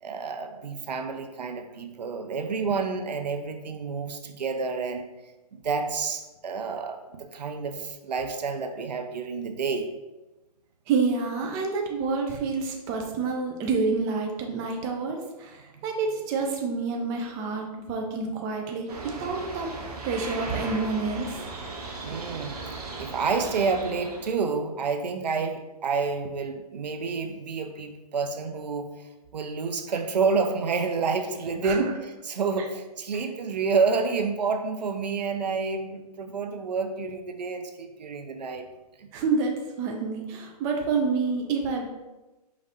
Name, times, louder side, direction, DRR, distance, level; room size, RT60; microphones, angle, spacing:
voice 1, 0.0-5.1 5.5-9.9 15.7-15.8 22.0-22.6 23.0-31.9 32.3-38.6 39.0-39.1, right 4 dB, 90° right, 6 dB, 0.6 m, -29 dB
voice 2, 10.9-19.7 20.0-21.5 31.6-31.9 32.6-32.7 39.1-41.8, right 4 dB, 15° right, 1 dB, 0.3 m, -28 dB
sound 1, 18.9-24.3, right 3 dB, 65° right, 1.1 m, -37 dB
4.9 x 3.2 x 2.7 m, 1.1 s
hypercardioid pair, 145°, 21 cm